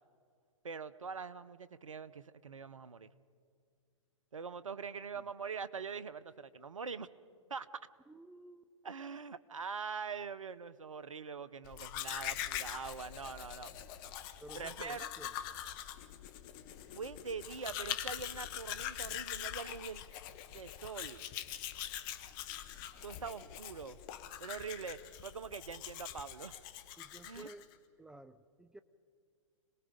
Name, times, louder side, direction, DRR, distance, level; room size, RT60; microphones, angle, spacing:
voice 1, 0.6-3.1 4.3-7.1 7.5-7.7 8.8-13.7 14.5-15.1 16.9-20.2 20.5-21.2 23.0-24.0 24.4-26.6 27.2-27.5, right 5 dB, 80° right, 16 dB, 0.8 m, -43 dB
voice 2, 8.1-8.7 14.4-15.4 27.0-27.7 28.0-28.8, right 2 dB, 5° right, 12 dB, 0.4 m, -53 dB
Domestic sounds home sounds, 11.6-27.7, left 11 dB, 40° left, 1.2 m, -43 dB
26.5 x 19.5 x 5.2 m, 2.2 s
figure-of-eight pair, 115°, 16 cm